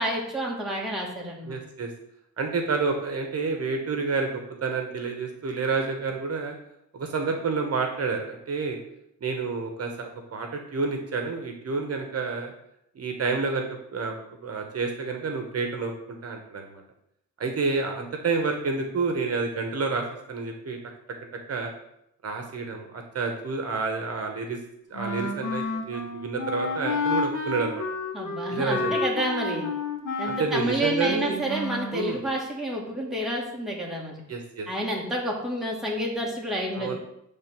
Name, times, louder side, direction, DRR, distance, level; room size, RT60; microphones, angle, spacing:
voice 1, 0.0-1.6 28.1-29.7 30.2-34.2 34.7-36.9, right 1 dB, ahead, -3 dB, 1.7 m, -29 dB
voice 2, 1.5-1.9 2.4-6.5 6.9-8.8 9.2-12.5 12.9-14.1 14.4-16.8 17.4-20.8 21.5-21.7 22.2-24.6 24.9-27.8 28.5-29.0 30.2-31.4 31.9-32.2 34.3-34.7 36.7-37.0, right 4 dB, 55° right, 4 dB, 1.0 m, -29 dB
Wind instrument woodwind instrument, 24.9-32.0, left 3 dB, 85° left, 1.4 m, -30 dB
8.6 x 3.4 x 5.9 m, 0.80 s
wide cardioid pair, 135°, 30 cm